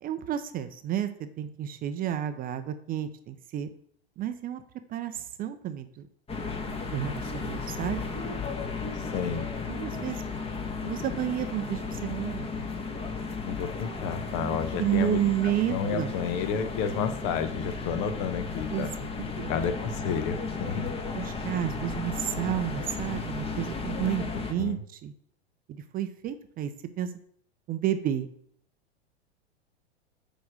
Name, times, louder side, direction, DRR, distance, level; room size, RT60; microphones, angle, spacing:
voice 1, 0.0-3.7 4.2-4.6 4.9-6.1 6.9-8.0 9.7-10.2 10.8-12.5 14.4-16.1 18.7-19.5 21.1-25.1 25.7-26.7 27.0-27.1 27.7-28.3, right 11 dB, 25° right, 10 dB, 0.6 m, -31 dB
sound 1, 6.3-24.5, left 4 dB, 15° left, 1.2 m, -34 dB
voice 2, 9.1-9.5 13.4-15.2 15.7-18.9 19.5-20.9 24.6-24.8, left 7 dB, 45° left, 9 dB, 1.1 m, -31 dB
7.0 x 5.0 x 6.3 m, 0.67 s
hypercardioid pair, 100°, 33 cm